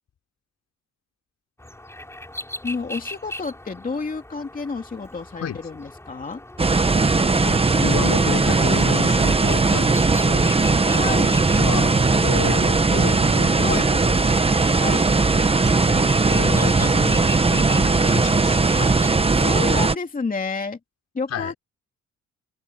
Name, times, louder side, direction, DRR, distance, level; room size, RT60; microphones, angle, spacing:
sound 1, 1.6-19.1, left 1 dB, 10° left, 4.8 m, -39 dB
voice 1, 2.6-6.4 10.9-11.4 13.6-13.9 14.7-15.1 18.8-20.8 21.1-21.5, left 4 dB, 30° left, 2.7 m, -30 dB
sound 2, 6.6-20.0, right 3 dB, 20° right, 1.3 m, -19 dB
voice 2, 7.3-10.6 11.6-14.3 15.8-18.6 21.3-21.5, left 8 dB, 60° left, 4.5 m, -31 dB
cardioid pair, 90°, 30 cm